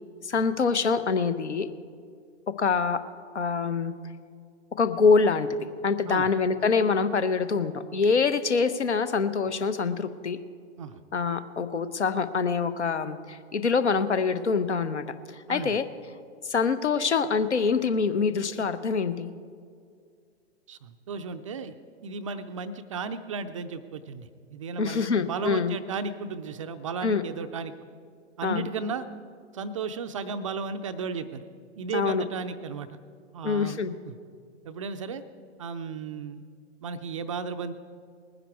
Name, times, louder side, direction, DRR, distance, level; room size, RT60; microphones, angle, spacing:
voice 1, 0.2-1.7 2.6-3.0 3.3-3.9 4.8-5.5 5.8-10.4 11.1-15.1 15.3-15.8 16.4-19.3 24.8-25.8 27.0-27.2 28.4-28.6 31.9-32.2 33.4-33.9, left 5 dB, 70° left, 12 dB, 0.9 m, -25 dB
voice 2, 20.7-21.8 22.0-27.7 28.4-29.1 29.5-31.5 31.8-32.9 33.3-34.1 34.6-35.2 35.6-36.4 36.8-37.7, right 5 dB, 30° right, 10 dB, 0.4 m, -34 dB
19.5 x 10.0 x 4.6 m, 2.2 s
figure-of-eight pair, 110°, 35 cm